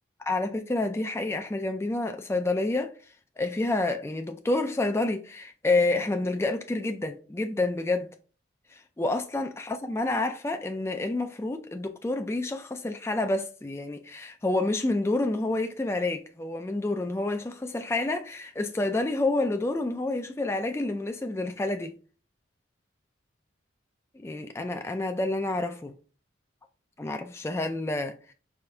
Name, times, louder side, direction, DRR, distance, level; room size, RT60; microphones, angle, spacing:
voice 1, 0.2-2.9 3.4-8.1 8.7-22.0 24.1-25.9 27.0-28.3, left 2 dB, 15° left, 0.3 m, -29 dB
4.9 x 2.5 x 3.3 m
head